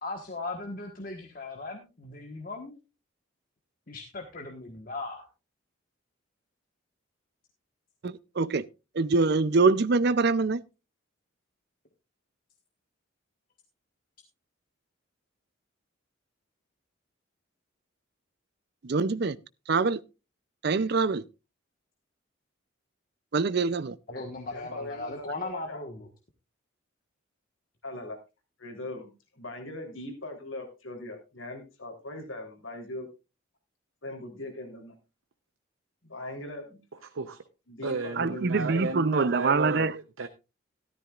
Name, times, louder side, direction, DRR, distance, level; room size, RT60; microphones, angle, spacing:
voice 1, 0.0-2.8 3.9-5.3 24.1-26.1, left 2 dB, 45° left, 1.4 m, -38 dB
voice 2, 8.0-8.6 8.9-10.6 18.8-19.4 19.7-20.0 20.6-21.2 23.3-24.0 38.2-40.0, right 4 dB, 50° right, 0.5 m, -24 dB
voice 3, 24.5-25.8 27.8-28.2 28.6-29.1 29.3-33.1 34.0-34.9 36.0-36.8 37.7-38.4 38.7-39.1, left 2 dB, 75° left, 3.4 m, -40 dB
voice 4, 37.0-37.4 37.8-40.3, right 3 dB, 80° right, 0.8 m, -33 dB
14.0 x 13.0 x 2.4 m
head